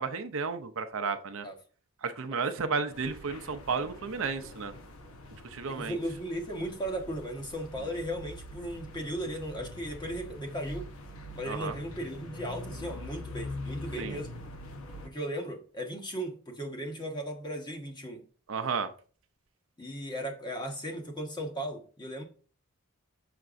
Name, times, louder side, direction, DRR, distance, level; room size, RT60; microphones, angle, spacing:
voice 1, 0.0-1.5 2.0-4.7 5.4-6.0 11.5-11.7 14.0-14.2 18.5-18.9, right 5 dB, 65° right, 0.6 m, -33 dB
sound 1, 2.9-15.1, left 1 dB, 65° left, 0.9 m, -44 dB
voice 2, 5.7-10.9 11.3-14.4 15.0-18.2 19.8-22.2, equal, 20° left, 1.1 m, -36 dB
6.5 x 5.9 x 2.5 m
head